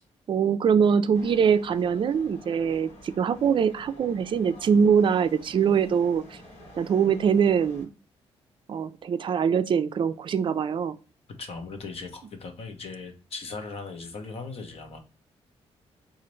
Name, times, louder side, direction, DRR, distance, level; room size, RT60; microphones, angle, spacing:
voice 1, 0.3-6.4 6.8-7.9 8.7-11.0, right 7 dB, 50° right, 13 dB, 0.4 m, -23 dB
sound 1, 1.1-7.9, left 1 dB, 80° left, 1.3 m, -49 dB
voice 2, 11.4-15.0, left 4 dB, 60° left, 5 dB, 0.9 m, -38 dB
3.9 x 2.4 x 3.0 m, 0.35 s
cardioid pair, 90°, 11 cm